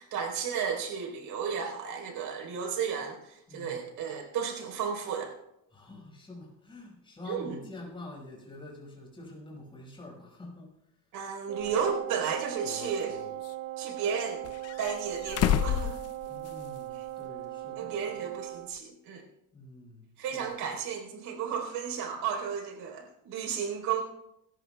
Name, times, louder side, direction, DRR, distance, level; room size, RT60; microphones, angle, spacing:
voice 1, 0.0-5.3 7.2-7.6 11.1-13.2 13.8-14.5 14.8-16.0 17.8-19.2 20.2-24.0, right 7 dB, 60° right, 1 dB, 4.0 m, -33 dB
voice 2, 3.5-3.9 5.7-10.7 16.3-18.2 19.5-20.6, left 2 dB, 15° left, -1 dB, 5.3 m, -46 dB
Wind instrument woodwind instrument, 11.5-18.8, right 16 dB, 40° right, 0.5 m, -39 dB
sound 1, 11.6-11.7 12.6-13.5 14.4-16.8 17.1-17.2 18.8-18.9, left 11 dB, 40° left, 0.6 m, -31 dB
27.0 x 13.5 x 2.3 m, 0.84 s
cardioid pair, 145°, 37 cm